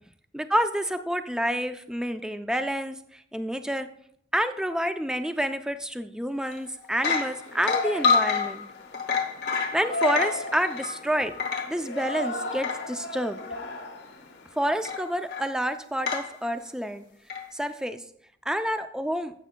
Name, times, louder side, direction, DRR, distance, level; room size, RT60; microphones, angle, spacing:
voice 1, 0.3-3.9 4.3-8.6 9.5-11.3 11.7-13.4 14.6-17.0 17.5-18.0 18.5-19.3, equal, 5° right, 9 dB, 0.4 m, -28 dB
sound 1, 6.4-6.6 7.0-12.9 13.4-13.5 14.8-15.5 16.1-16.4 17.3-17.5, left 5 dB, 60° left, 0.9 m, -28 dB
Yell, 7.1-14.9, left 2 dB, 85° left, 1.1 m, -36 dB
14.5 x 7.3 x 2.2 m, 0.67 s
head